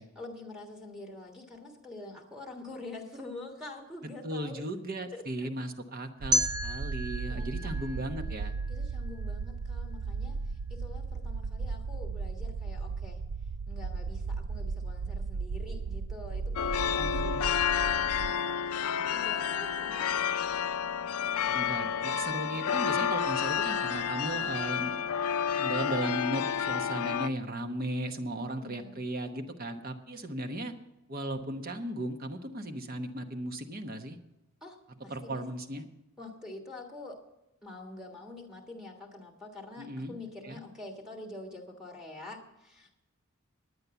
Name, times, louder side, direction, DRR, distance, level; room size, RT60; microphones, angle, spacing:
voice 1, 0.0-4.7 5.1-5.5 7.3-8.3 8.7-13.2 13.7-18.7 19.1-20.1 28.3-29.0 34.6-35.5 36.2-37.2 37.6-43.0, left 2 dB, 5° right, 1 dB, 1.5 m, -46 dB
voice 2, 4.2-8.5 16.9-17.5 21.4-25.0 25.6-30.7 31.1-34.2 35.1-35.8 39.8-40.1 40.4-40.6, right 1 dB, 40° right, 7 dB, 1.0 m, -36 dB
sound 1, 6.2-18.3, right 4 dB, 65° right, 0.4 m, -36 dB
sound 2, 6.3-9.3, equal, 20° right, 0.6 m, -33 dB
sound 3, 16.6-27.3, left 8 dB, 80° left, 0.4 m, -30 dB
10.5 x 9.6 x 6.9 m, 0.92 s
head